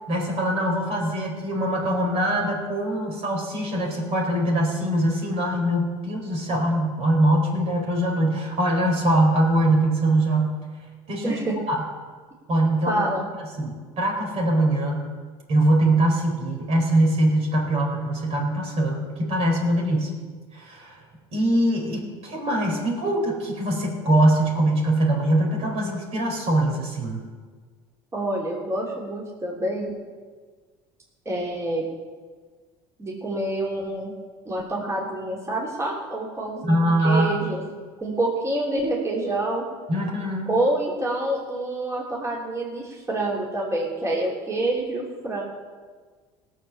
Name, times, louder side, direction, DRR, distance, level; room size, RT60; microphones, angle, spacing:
voice 1, 0.1-10.5 11.1-11.3 11.7-11.8 12.5-13.0 13.6-15.1 15.5-20.1 20.5-21.0 21.3-27.2 36.6-37.4 39.9-40.5, right 1 dB, 55° right, 0 dB, 4.3 m, -22 dB
voice 2, 11.2-11.6 12.9-13.3 28.1-30.0 31.2-31.8 33.0-34.1 34.4-37.6 38.0-39.6 40.5-45.4, right 1 dB, 20° right, -3 dB, 3.3 m, -27 dB
17.0 x 7.3 x 7.0 m, 1.5 s
supercardioid pair, 95°, 13 cm